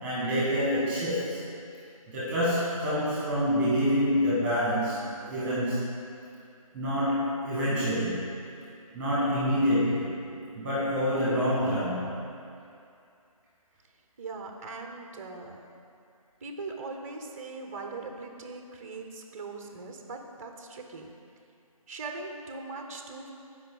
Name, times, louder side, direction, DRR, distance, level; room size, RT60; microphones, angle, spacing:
voice 1, 0.0-1.4 2.1-5.0 5.3-5.9 6.7-8.3 8.9-10.2 10.5-12.1, equal, 10° right, -9 dB, 1.5 m, -27 dB
voice 2, 14.2-15.6 16.4-21.1 21.9-23.3, right 3 dB, 25° right, 3 dB, 0.6 m, -40 dB
15.0 x 5.1 x 3.8 m, 2.5 s
figure-of-eight pair, 160°, 19 cm